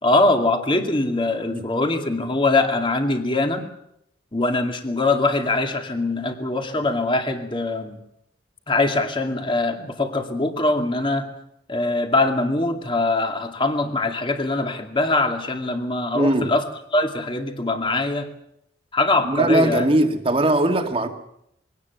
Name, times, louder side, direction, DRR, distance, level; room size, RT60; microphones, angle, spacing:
voice 1, 0.0-3.7 4.3-8.0 8.7-11.3 11.7-16.6 16.9-18.3 18.9-19.9, left 2 dB, 25° left, 2.3 m, -22 dB
voice 2, 16.1-16.5 19.2-21.1, right 1 dB, 30° right, 2.0 m, -20 dB
23.0 x 18.0 x 8.2 m
head